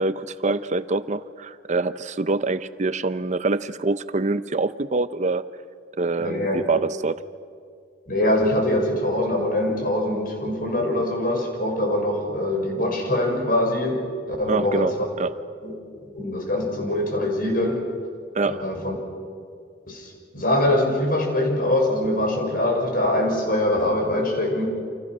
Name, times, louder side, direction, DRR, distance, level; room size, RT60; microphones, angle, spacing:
voice 1, 0.0-5.4 6.0-7.2 14.5-15.3 18.3-18.7, right 3 dB, 40° right, 13 dB, 0.7 m, -25 dB
voice 2, 6.2-6.6 8.1-14.9 15.6-15.8 16.0-17.9 18.5-19.0 19.9-24.6, left 1 dB, 55° left, 2 dB, 5.9 m, -23 dB
29.5 x 27.5 x 6.2 m, 2.2 s
head